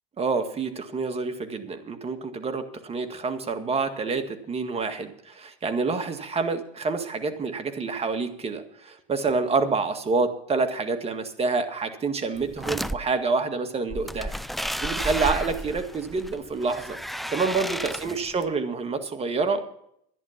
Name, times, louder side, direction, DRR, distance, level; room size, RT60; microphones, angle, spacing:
voice 1, 0.2-14.3 14.8-17.0 17.3-19.6, right 4 dB, 30° right, 7 dB, 1.9 m, -27 dB
sound 1, 12.4-13.0 13.9-18.4, equal, ahead, 0.4 m, -32 dB
11.0 x 11.0 x 5.8 m, 0.71 s
supercardioid pair, 95°, 20 cm